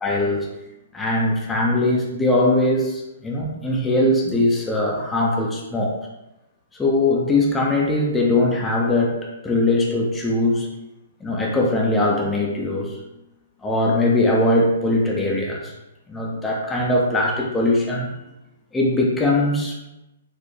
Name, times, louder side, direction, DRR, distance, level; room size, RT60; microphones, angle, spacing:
voice 1, 0.0-0.5 0.9-6.0 6.8-10.7 11.2-13.0 13.6-15.7 16.1-18.1 18.7-19.9, left 2 dB, 10° left, -3 dB, 0.5 m, -21 dB
4.1 x 2.2 x 3.2 m, 0.94 s
hypercardioid pair, 150°, 0 cm